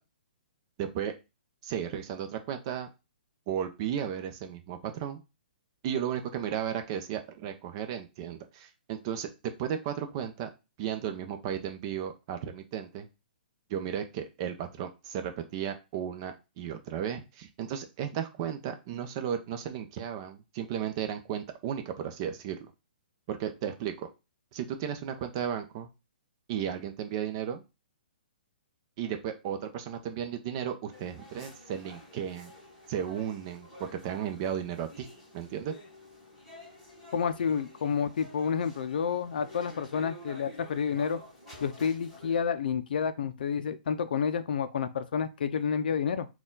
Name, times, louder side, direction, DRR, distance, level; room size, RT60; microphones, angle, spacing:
voice 1, 0.8-1.1 1.6-2.9 3.5-5.2 5.8-9.3 9.6-10.5 10.8-13.1 13.7-22.7 23.3-24.1 24.5-25.9 26.5-27.6 29.0-32.5 32.9-35.1 35.3-35.7, right 9 dB, 35° right, 0.6 m, -34 dB
sound 1, 30.9-42.4, left 1 dB, 5° left, 1.4 m, -50 dB
voice 2, 37.1-41.2 41.6-46.3, left 7 dB, 70° left, 0.5 m, -29 dB
4.2 x 2.3 x 3.8 m
hypercardioid pair, 155°, 5 cm